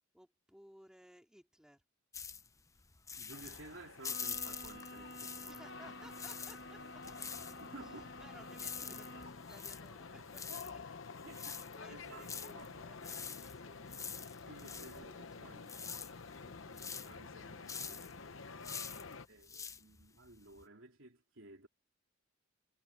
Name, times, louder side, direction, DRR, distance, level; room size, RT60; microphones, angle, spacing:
voice 1, 0.1-1.8 5.5-7.0 7.8-10.8 11.3-15.8 16.2-16.7 18.5-19.5, equal, 5° right, 3.2 m, -61 dB
sound 1, 2.1-5.7 6.0-20.6, left 6 dB, 15° left, 0.6 m, -46 dB
voice 2, 3.1-5.7 6.8-6.9 7.6-8.1 8.9-9.0 11.2-11.6 11.9-12.8 13.8-14.0 14.4-15.8 16.4-18.2 19.3-21.7, right 2 dB, 70° right, 3.5 m, -55 dB
sound 2, 3.3-19.3, left 4 dB, 70° left, 0.9 m, -50 dB
Bowed string instrument, 4.0-9.5, left 1 dB, 50° left, 1.4 m, -52 dB
head